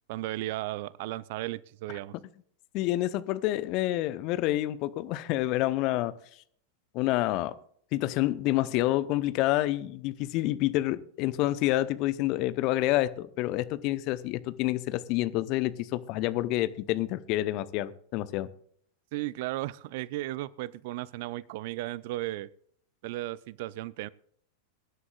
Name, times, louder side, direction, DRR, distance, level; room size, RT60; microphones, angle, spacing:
voice 1, 0.1-2.1 19.1-22.5 23.0-24.1, right 16 dB, 50° right, 0.5 m, -35 dB
voice 2, 2.7-6.1 6.9-7.5 7.9-18.5, left 16 dB, 40° left, 0.8 m, -28 dB
23.0 x 11.0 x 2.4 m
figure-of-eight pair, 90°, 0 cm